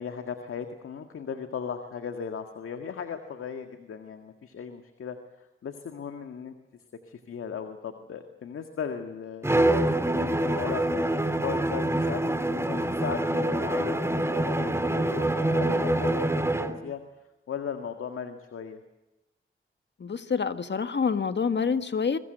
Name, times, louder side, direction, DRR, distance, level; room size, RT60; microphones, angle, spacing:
voice 1, 0.0-6.5 7.0-10.8 11.4-17.0 17.5-18.8, left 7 dB, 85° left, 7 dB, 1.9 m, -37 dB
Bowed string instrument, 9.4-16.8, right 1 dB, 10° right, 2.7 m, -26 dB
voice 2, 20.0-22.2, left 5 dB, 55° left, 10 dB, 1.7 m, -27 dB
26.5 x 23.0 x 8.0 m, 0.99 s
cardioid pair, 55°, 21 cm